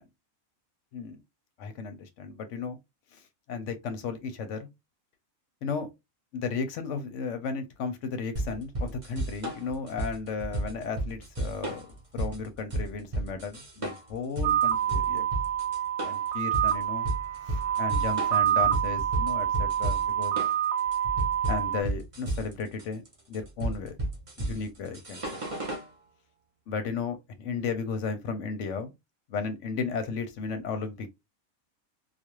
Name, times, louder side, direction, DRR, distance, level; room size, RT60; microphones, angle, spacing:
voice 1, 1.6-2.8 3.1-3.2 3.5-4.7 5.6-5.9 6.3-15.2 16.0-17.1 17.4-20.4 21.5-23.0 23.3-24.0 24.4-25.2 26.7-28.9 29.3-31.1, left 5 dB, 70° left, 0.9 m, -34 dB
sound 1, 8.4-25.9, right 1 dB, 30° right, 0.7 m, -33 dB
sound 2, 14.4-21.8, right 10 dB, 90° right, 1.1 m, -27 dB
2.4 x 2.3 x 2.9 m
omnidirectional pair, 1.5 m